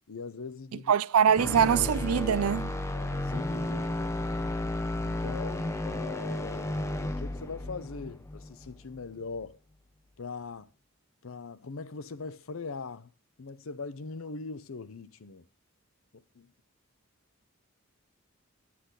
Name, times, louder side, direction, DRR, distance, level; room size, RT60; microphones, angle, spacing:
voice 1, 0.1-0.9 1.3-1.4 2.9-4.2 5.0-9.6 10.2-10.7 11.2-13.1 13.4-15.4 16.1-16.5, left 4 dB, 70° left, 0.6 m, -41 dB
voice 2, 0.9-2.7, right 8 dB, 85° right, 0.4 m, -23 dB
sound 1, 1.4-9.5, left 1 dB, 15° left, 0.5 m, -33 dB
9.8 x 8.6 x 3.8 m
head